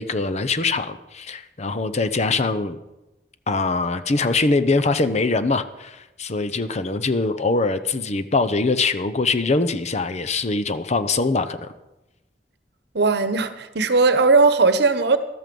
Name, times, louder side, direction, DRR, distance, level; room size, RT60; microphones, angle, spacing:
voice 1, 0.0-2.8 3.5-11.7, left 3 dB, 40° left, 0.8 m, -23 dB
voice 2, 12.9-15.2, right 3 dB, 65° right, 1.0 m, -18 dB
13.5 x 12.5 x 5.3 m
head